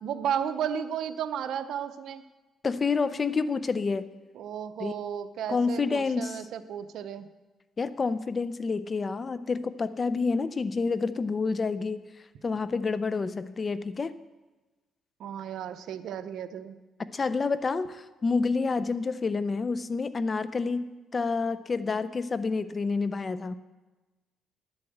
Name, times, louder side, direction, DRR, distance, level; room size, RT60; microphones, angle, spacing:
voice 1, 0.0-2.2 4.4-7.3 15.2-16.7, right 8 dB, 75° right, 12 dB, 0.7 m, -33 dB
voice 2, 2.6-4.1 4.8-4.9 5.5-6.4 7.8-12.0 12.4-14.2 17.1-23.5, left 4 dB, 35° left, 14 dB, 0.6 m, -28 dB
11.0 x 7.2 x 7.9 m, 1.2 s
cardioid pair, 90°, 0 cm